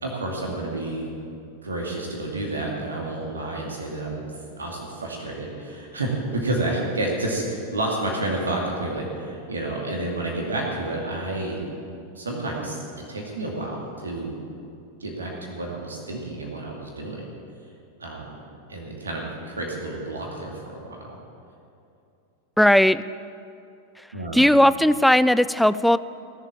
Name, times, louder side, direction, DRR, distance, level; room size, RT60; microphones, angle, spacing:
voice 1, 0.0-1.1 1.6-4.2 4.6-11.7 12.1-14.3 15.0-17.3 18.0-18.3 18.7-21.2 24.1-24.4, right 2 dB, 75° right, -1 dB, 2.4 m, -30 dB
voice 2, 22.6-23.0 24.3-26.0, equal, ahead, 16 dB, 0.3 m, -17 dB
18.0 x 7.4 x 8.7 m, 2.6 s
figure-of-eight pair, 90°, 0 cm